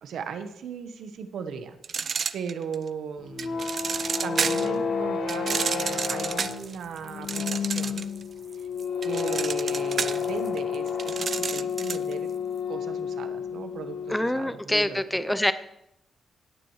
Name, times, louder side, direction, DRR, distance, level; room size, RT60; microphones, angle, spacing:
voice 1, 0.0-1.8 2.3-3.6 4.2-8.1 9.0-12.3 12.7-15.4, right 6 dB, 90° right, 9 dB, 1.0 m, -37 dB
sound 1, 1.8-2.9 3.4-4.7 5.3-8.2 8.5-12.1, right 6 dB, 50° right, 0.5 m, -30 dB
sound 2, 3.2-14.4, left 6 dB, 85° left, 1.4 m, -30 dB
voice 2, 14.1-15.5, left 1 dB, 5° left, 12 dB, 0.6 m, -25 dB
17.0 x 9.3 x 3.2 m, 0.83 s
cardioid pair, 120°, 0 cm